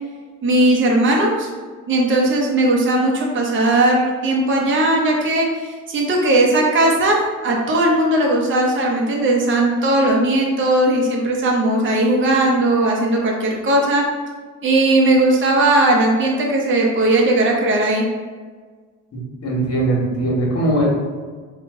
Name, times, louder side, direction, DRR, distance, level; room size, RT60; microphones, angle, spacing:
voice 1, 0.4-1.5 1.9-14.0 14.6-18.0, right 1 dB, 40° right, -1 dB, 0.7 m, -17 dB
voice 2, 19.1-20.9, right 2 dB, 55° left, -3 dB, 1.3 m, -20 dB
3.8 x 2.4 x 3.6 m, 1.5 s
cardioid pair, 90°, 30 cm